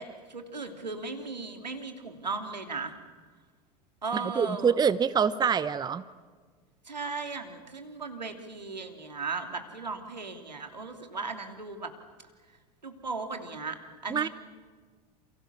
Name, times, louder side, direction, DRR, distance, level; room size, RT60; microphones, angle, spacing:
voice 1, 0.0-2.9 4.0-4.8 6.8-11.9 12.8-13.8 14.0-14.3, right 4 dB, 85° right, 6 dB, 2.9 m, -36 dB
voice 2, 4.1-6.0 14.1-14.3, right 7 dB, 20° right, 16 dB, 0.9 m, -25 dB
29.5 x 29.0 x 7.0 m, 1.6 s
figure-of-eight pair, 80°, 21 cm